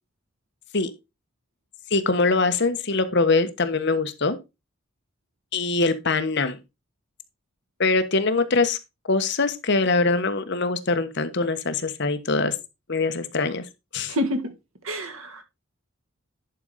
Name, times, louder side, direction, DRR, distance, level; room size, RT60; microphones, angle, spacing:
voice 1, 1.9-4.4 5.5-6.6 7.8-8.8 9.1-12.5 12.9-13.6 13.9-14.1, left 3 dB, 55° left, 1.1 m, -23 dB
voice 2, 14.1-14.5 14.8-15.4, left 1 dB, 80° right, 1.7 m, -27 dB
11.0 x 5.0 x 4.1 m
head